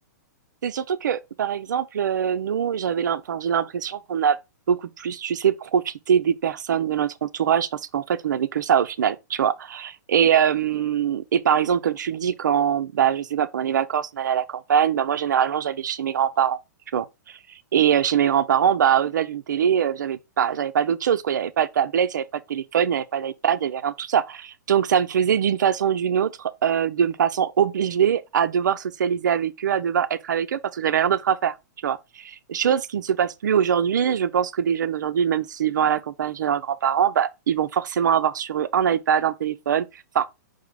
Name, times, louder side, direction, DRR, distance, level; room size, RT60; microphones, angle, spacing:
voice 1, 0.6-4.4 4.7-16.6 16.9-17.4 17.7-31.5 31.8-39.9 40.1-40.3, right 8 dB, 85° right, 0.5 m, -23 dB
5.3 x 2.0 x 4.9 m
hypercardioid pair, 135°, 10 cm